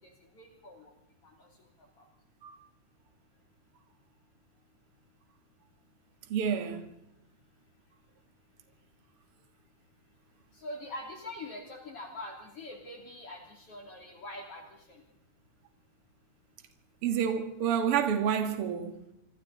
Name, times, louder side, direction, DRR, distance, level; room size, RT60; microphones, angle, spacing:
voice 1, 0.4-0.9 1.2-1.5 10.6-14.6 14.9-15.0, left 1 dB, 45° left, 3.8 m, -43 dB
voice 2, 6.3-7.0 17.0-19.0, right 8 dB, 45° right, 2.4 m, -29 dB
26.0 x 26.0 x 4.1 m
omnidirectional pair, 3.9 m